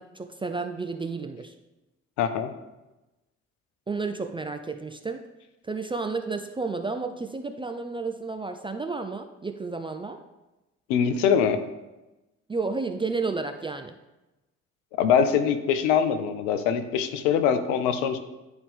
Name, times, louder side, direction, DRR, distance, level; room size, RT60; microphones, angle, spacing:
voice 1, 0.0-1.5 3.9-5.3 5.6-10.2 12.5-13.9, right 4 dB, 15° right, 7 dB, 0.4 m, -31 dB
voice 2, 2.2-2.5 10.9-11.6 14.9-18.2, left 7 dB, 70° left, 10 dB, 0.6 m, -23 dB
10.5 x 3.5 x 3.5 m, 1.0 s
figure-of-eight pair, 40°, 37 cm